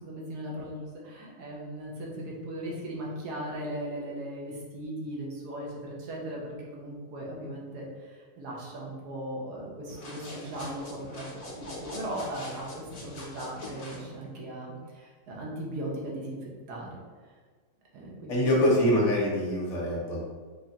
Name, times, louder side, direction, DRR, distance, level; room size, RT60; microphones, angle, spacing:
voice 1, 0.0-11.2 11.5-17.0 17.9-18.7, right 1 dB, 80° right, -3 dB, 1.4 m, -38 dB
sound 1, 9.9-14.0, left 1 dB, 40° left, 0.6 m, -43 dB
voice 2, 18.3-20.2, left 1 dB, 55° left, -3 dB, 1.0 m, -24 dB
3.7 x 3.3 x 2.8 m, 1.5 s
omnidirectional pair, 1.7 m